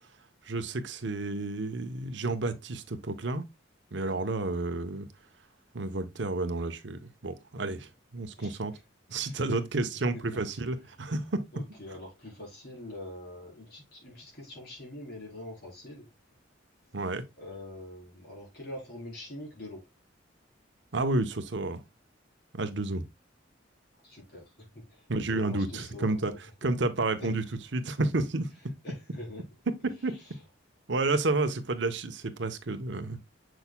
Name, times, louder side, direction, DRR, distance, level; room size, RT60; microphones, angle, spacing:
voice 1, 0.5-3.4 3.9-5.1 5.7-8.7 9.1-11.4 16.9-17.2 20.9-21.8 22.5-23.0 25.1-26.3 26.6-27.4 27.7-28.5 29.8-30.1 30.9-33.2, right 2 dB, 65° right, 0.9 m, -30 dB
voice 2, 11.5-16.1 17.4-19.9 24.0-26.4 27.2-27.3 28.8-29.4 30.1-30.4, left 1 dB, 55° left, 4.1 m, -44 dB
7.0 x 6.3 x 2.2 m
head